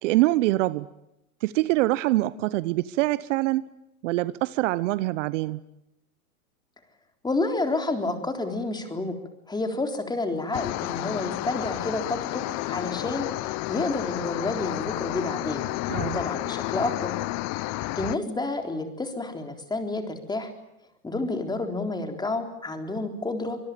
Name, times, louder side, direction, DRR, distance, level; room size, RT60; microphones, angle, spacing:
voice 1, 0.0-0.9 1.4-3.6 4.0-5.6 15.9-16.2, right 18 dB, 55° right, 17 dB, 0.9 m, -24 dB
voice 2, 7.2-9.2 9.5-15.7 16.1-17.1 17.7-20.5 21.0-23.6, left 2 dB, 10° left, 5 dB, 3.8 m, -30 dB
sound 1, 10.5-18.2, left 19 dB, 35° left, 1.0 m, -31 dB
24.5 x 22.0 x 9.1 m, 0.86 s
hypercardioid pair, 120°, 44 cm